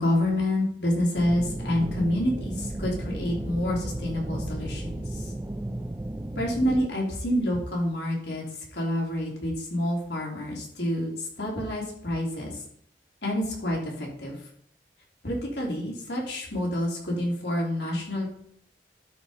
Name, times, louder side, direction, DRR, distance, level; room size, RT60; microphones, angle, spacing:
voice 1, 0.0-5.3 6.4-8.4 8.7-12.6 13.2-14.4 15.2-18.4, left 1 dB, 80° left, -3 dB, 3.5 m, -28 dB
sound 1, 1.2-6.9, right 1 dB, 15° right, 0.4 m, -34 dB
12.0 x 4.8 x 5.1 m, 0.65 s
head